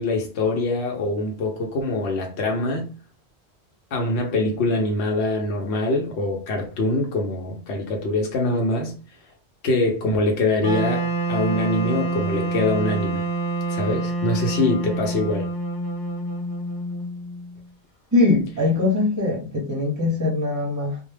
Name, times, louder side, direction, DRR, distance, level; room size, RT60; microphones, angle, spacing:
voice 1, 0.0-2.9 3.9-8.9 9.6-13.3 13.7-15.5, left 2 dB, 85° left, 0.9 m, -24 dB
Wind instrument woodwind instrument, 10.6-17.6, right 2 dB, 30° left, 0.5 m, -27 dB
voice 2, 18.1-21.0, left 2 dB, 25° right, 0.4 m, -21 dB
2.2 x 2.1 x 3.1 m
omnidirectional pair, 1.1 m